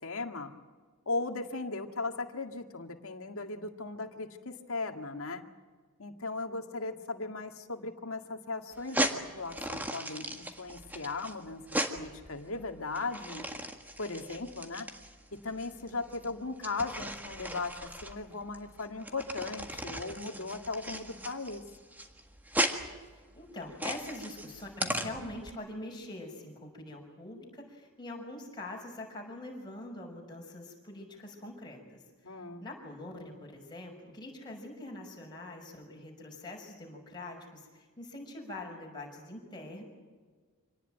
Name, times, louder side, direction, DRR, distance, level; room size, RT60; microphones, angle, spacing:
voice 1, 0.0-0.5 1.1-5.4 6.0-11.6 11.9-13.4 14.0-14.9 15.3-21.6 32.2-32.6, left 3 dB, 70° left, 5 dB, 2.0 m, -37 dB
sound 1, 8.7-25.5, right 1 dB, 10° right, 1.6 m, -37 dB
voice 2, 23.3-32.3 32.6-39.8, left 2 dB, 20° left, -1 dB, 6.0 m, -44 dB
26.0 x 19.0 x 9.1 m, 1.5 s
head